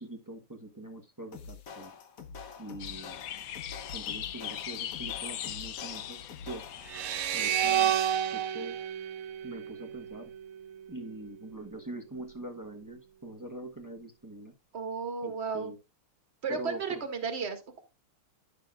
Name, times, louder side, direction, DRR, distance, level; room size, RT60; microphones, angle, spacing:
voice 1, 0.0-1.9 2.6-3.2 3.9-6.6 7.3-8.0 8.3-8.8 9.4-10.3 10.9-14.5 15.2-15.8 16.5-17.0, right 1 dB, 15° right, 4 dB, 0.6 m, -43 dB
sound 1, 1.3-7.0, left 5 dB, 50° left, 1.2 m, -46 dB
sound 2, 2.8-7.8, left 11 dB, 90° left, 0.7 m, -40 dB
sound 3, 6.9-10.2, right 10 dB, 80° right, 1.7 m, -30 dB
voice 2, 14.7-15.7 16.4-17.8, right 5 dB, 30° right, 6 dB, 1.8 m, -34 dB
15.0 x 6.8 x 2.4 m, 0.26 s
omnidirectional pair, 2.4 m